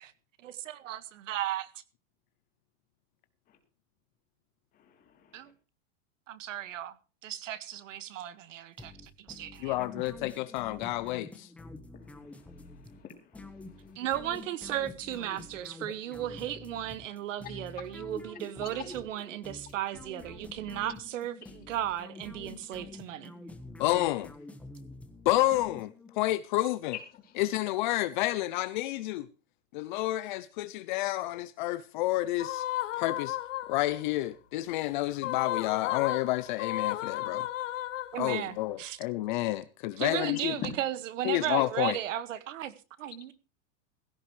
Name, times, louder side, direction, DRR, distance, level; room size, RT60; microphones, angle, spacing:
voice 1, 0.4-1.7 5.3-5.5 6.3-6.9 7.2-9.8 14.0-23.3 38.1-39.0 40.0-43.3, right 12 dB, 80° right, 1.8 m, -35 dB
voice 2, 4.9-5.5 12.0-14.0 17.4-17.6 18.6-18.9 21.4-21.5 27.2-27.3 40.6-40.7, left 8 dB, 25° left, 3.0 m, -45 dB
sound 1, 8.8-26.3, left 2 dB, 5° left, 1.3 m, -47 dB
voice 3, 9.6-11.5 23.8-24.3 25.3-27.0 27.4-29.3 29.7-32.6 33.0-33.4 33.7-37.5 38.2-40.6 41.2-42.0, left 17 dB, 40° left, 0.6 m, -30 dB
sound 2, 32.4-34.1 35.1-38.5, left 14 dB, 75° left, 1.2 m, -34 dB
16.5 x 14.5 x 3.2 m
supercardioid pair, 170°, 38 cm